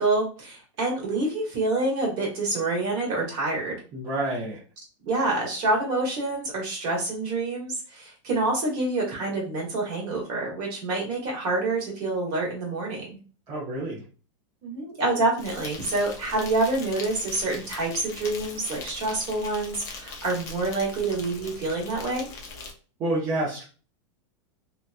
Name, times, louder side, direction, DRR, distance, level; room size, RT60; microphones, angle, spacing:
voice 1, 0.0-3.8 5.0-13.2 14.6-22.3, right 2 dB, 35° right, -2 dB, 1.3 m, -27 dB
voice 2, 3.9-4.6 13.5-14.0 23.0-23.6, right 1 dB, 20° right, -7 dB, 0.6 m, -28 dB
Insect, 15.4-22.7, left 4 dB, 20° left, 0.4 m, -41 dB
2.8 x 2.2 x 2.5 m, 0.37 s
supercardioid pair, 165°, 16 cm